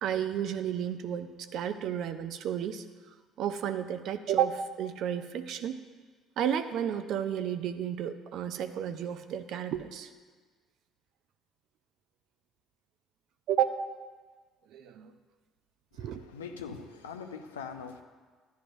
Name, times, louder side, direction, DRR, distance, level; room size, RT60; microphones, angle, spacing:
voice 1, 0.0-2.8 3.4-5.8 6.4-10.1 13.5-13.8 14.7-15.1 16.0-16.2, right 9 dB, 60° right, 10 dB, 0.6 m, -32 dB
voice 2, 15.9-18.0, left 6 dB, 85° left, 5 dB, 0.6 m, -42 dB
13.0 x 10.0 x 2.6 m, 1.5 s
hypercardioid pair, 55°, 0 cm